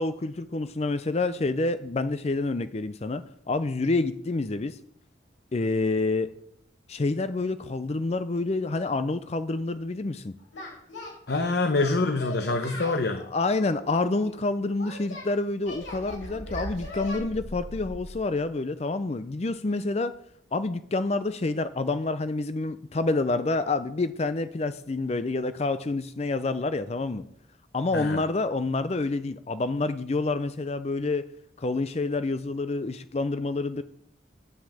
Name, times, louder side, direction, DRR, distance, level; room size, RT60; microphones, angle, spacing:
voice 1, 0.0-4.8 5.5-6.3 6.9-10.3 12.9-13.0 13.3-20.1 20.5-27.2 27.7-31.3 31.6-33.8, left 3 dB, 35° left, 12 dB, 0.5 m, -28 dB
Singing, 10.5-11.4 11.7-13.0 13.6-15.3 15.7-17.2, left 3 dB, 85° left, 5.7 m, -39 dB
voice 2, 11.3-13.3 27.9-28.2, left 3 dB, 60° left, 7 dB, 0.9 m, -25 dB
sound 1, 15.7-18.5, equal, 50° right, 1.7 m, -40 dB
9.6 x 6.1 x 8.5 m, 0.70 s
head